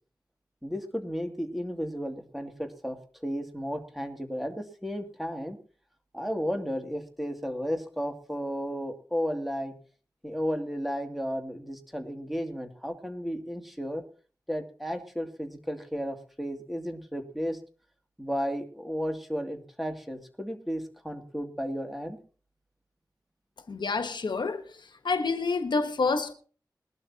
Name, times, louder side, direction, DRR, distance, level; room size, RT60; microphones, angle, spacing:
voice 1, 0.6-3.0 3.2-5.6 6.1-9.7 10.2-14.0 14.5-17.6 18.2-22.2, equal, ahead, 2.6 m, -33 dB
voice 2, 23.7-24.6 25.0-26.3, left 4 dB, 80° left, 1.3 m, -28 dB
20.5 x 12.0 x 2.9 m
wide cardioid pair, 85°, 8 cm